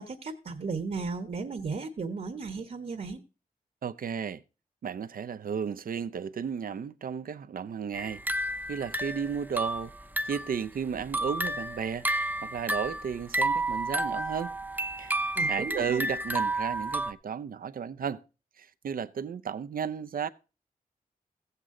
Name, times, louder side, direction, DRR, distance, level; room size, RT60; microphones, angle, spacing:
voice 1, 0.0-3.2 15.3-16.0, right 4 dB, 55° right, 1.1 m, -35 dB
voice 2, 3.8-4.4 4.8-9.9 10.3-14.5 15.0-18.2 18.6-20.3, right 7 dB, 70° right, 0.6 m, -34 dB
sound 1, 7.9-10.6 11.0-17.1, right 1 dB, 10° right, 0.7 m, -31 dB
15.0 x 8.1 x 3.8 m
wide cardioid pair, 75°, 15 cm